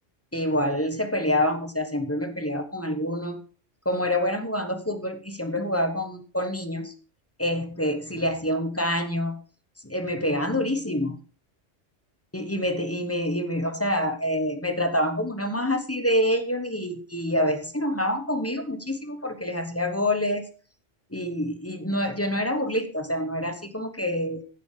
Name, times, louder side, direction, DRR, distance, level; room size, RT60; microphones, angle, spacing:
voice 1, 0.3-3.4 3.8-6.9 7.4-9.4 9.8-11.2 12.3-20.4 21.1-24.4, left 1 dB, 15° left, 7 dB, 1.0 m, -27 dB
16.0 x 6.2 x 3.7 m, 0.39 s
omnidirectional pair, 1.3 m